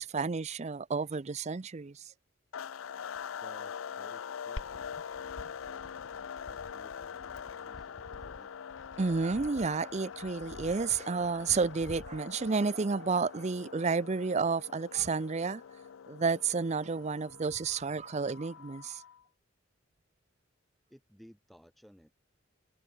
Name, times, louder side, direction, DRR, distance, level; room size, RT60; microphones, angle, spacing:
voice 1, 0.0-2.0 9.0-15.6 16.1-19.0, right 4 dB, 35° right, 0.5 m, -31 dB
sound 1, 2.5-19.2, left 7 dB, 85° left, 0.5 m, -44 dB
voice 2, 3.4-8.5 20.9-22.1, equal, ahead, 5.3 m, -59 dB
Glass, 4.6-12.5, left 1 dB, 70° left, 1.7 m, -50 dB
head